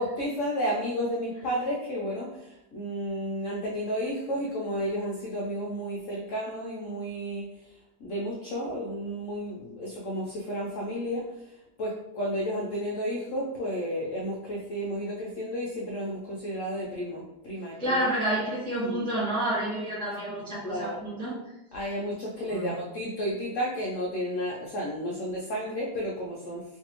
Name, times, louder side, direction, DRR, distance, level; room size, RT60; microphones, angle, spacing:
voice 1, 0.0-7.5 8.0-18.0 18.8-19.1 20.6-21.0 21.7-26.6, equal, 80° left, -4 dB, 0.7 m, -32 dB
voice 2, 17.8-21.4 22.5-22.7, right 1 dB, 5° left, -8 dB, 0.3 m, -29 dB
3.2 x 2.6 x 2.9 m, 0.89 s
omnidirectional pair, 2.0 m